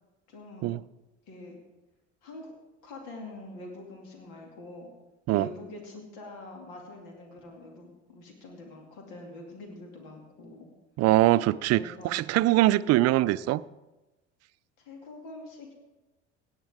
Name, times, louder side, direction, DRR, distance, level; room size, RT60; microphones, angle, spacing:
voice 1, 0.3-0.7 1.3-1.6 2.2-2.5 2.8-4.9 5.3-10.7 11.7-12.2 14.8-15.7, left 2 dB, 70° left, 1 dB, 2.5 m, -45 dB
voice 2, 11.0-13.6, right 16 dB, 45° right, 18 dB, 0.5 m, -23 dB
17.0 x 9.7 x 3.6 m, 1.1 s
hypercardioid pair, 65°, 35 cm